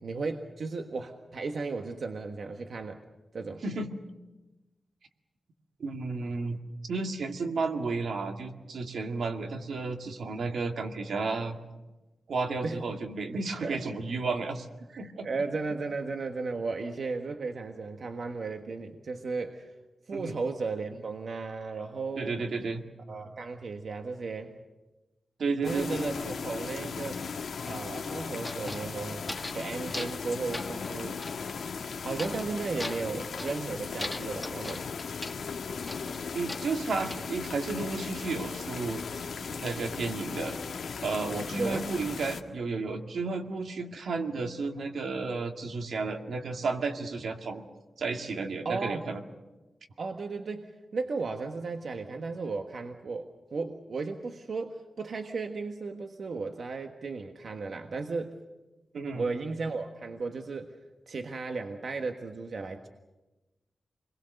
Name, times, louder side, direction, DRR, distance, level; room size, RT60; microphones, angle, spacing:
voice 1, 0.0-3.0 3.3-3.6 12.6-12.8 13.6-13.8 14.9-19.7 20.1-22.4 23.1-24.5 25.6-27.2 27.7-31.2 32.0-34.9 41.5-41.9 48.6-49.1 50.0-58.4 59.1-60.7 61.1-62.9, right 4 dB, 55° right, 4 dB, 1.5 m, -35 dB
voice 2, 5.8-6.6 6.9-11.6 12.3-14.7 15.0-15.3 20.1-20.3 22.2-22.8 25.4-25.9 36.3-39.0 39.6-40.6 41.0-47.6 48.0-49.2 58.9-59.2, right 4 dB, 80° right, 4 dB, 2.1 m, -32 dB
sound 1, 25.6-42.4, left 5 dB, 85° left, 1.7 m, -37 dB
sound 2, 28.4-29.7 29.9-30.3 30.5-31.5 32.2-32.5 32.8-33.6 34.0-35.4 35.9-37.2, left 2 dB, 15° left, 1.2 m, -40 dB
28.0 x 22.0 x 6.6 m, 1.1 s
wide cardioid pair, 175°, 0 cm